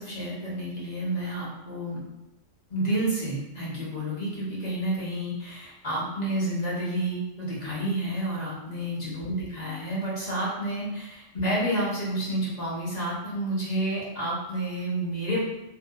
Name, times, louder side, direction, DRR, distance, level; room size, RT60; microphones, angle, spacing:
voice 1, 0.0-2.0 2.7-15.4, right 1 dB, 40° left, -7 dB, 0.8 m, -30 dB
2.7 x 2.1 x 2.2 m, 0.94 s
omnidirectional pair, 1.3 m